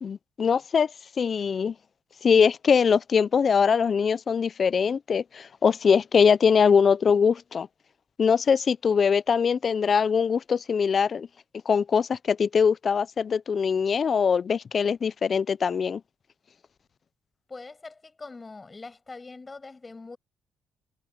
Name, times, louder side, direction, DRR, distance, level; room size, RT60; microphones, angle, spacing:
voice 1, 0.0-1.7 2.2-7.7 8.2-11.3 11.7-16.0, left 6 dB, 45° left, 0.4 m, -22 dB
voice 2, 17.5-20.2, left 3 dB, 25° left, 7.5 m, -43 dB
cardioid pair, 90°, 0 cm